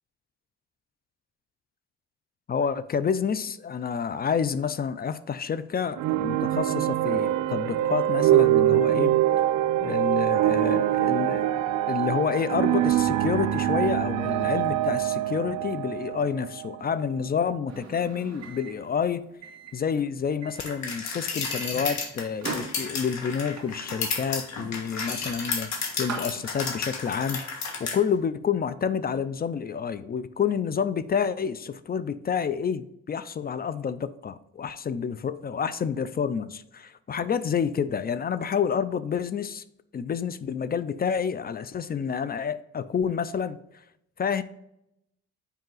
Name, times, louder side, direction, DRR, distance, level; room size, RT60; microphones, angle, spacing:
voice 1, 2.5-9.1 9.8-11.5 11.9-19.2 19.7-27.4 27.8-39.6 39.9-43.6 44.2-44.4, left 7 dB, 30° left, 14 dB, 0.4 m, -29 dB
sound 1, 6.0-17.2, right 13 dB, 80° right, 0.5 m, -24 dB
Microwave oven, 17.7-26.9, right 5 dB, 60° right, 1.9 m, -42 dB
sound 2, 20.6-28.0, left 4 dB, 65° left, 1.5 m, -32 dB
5.4 x 5.0 x 3.8 m, 0.80 s
cardioid pair, 90°, 30 cm